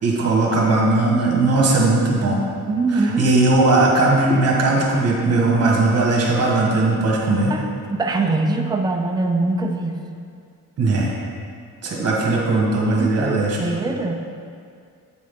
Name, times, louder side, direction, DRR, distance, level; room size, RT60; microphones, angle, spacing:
voice 1, 0.0-2.4 2.9-7.5 10.8-11.1 11.8-13.6, right 2 dB, 50° right, -2 dB, 1.5 m, -18 dB
voice 2, 2.6-3.3 7.5-7.6 7.9-10.0 13.0-14.1, right 3 dB, 15° right, 2 dB, 0.5 m, -22 dB
8.7 x 6.1 x 3.7 m, 2.3 s
wide cardioid pair, 160°, 33 cm